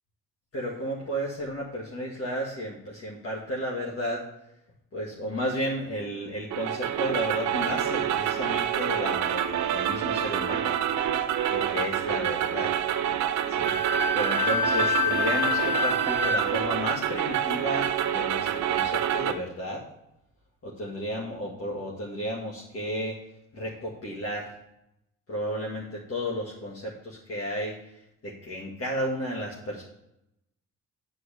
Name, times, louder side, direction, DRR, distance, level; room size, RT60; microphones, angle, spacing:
voice 1, 0.5-4.2 4.9-10.7 11.5-12.7 13.5-13.8 14.1-19.8 20.6-23.2 23.5-24.5 25.3-27.7 28.2-29.8, equal, 50° left, -4 dB, 1.9 m, -33 dB
sound 1, 6.5-19.3, right 10 dB, 70° right, 0.7 m, -27 dB
Wind instrument woodwind instrument, 13.6-16.4, left 4 dB, 5° left, 1.0 m, -27 dB
8.5 x 4.7 x 6.7 m, 0.83 s
cardioid pair, 90°, 30 cm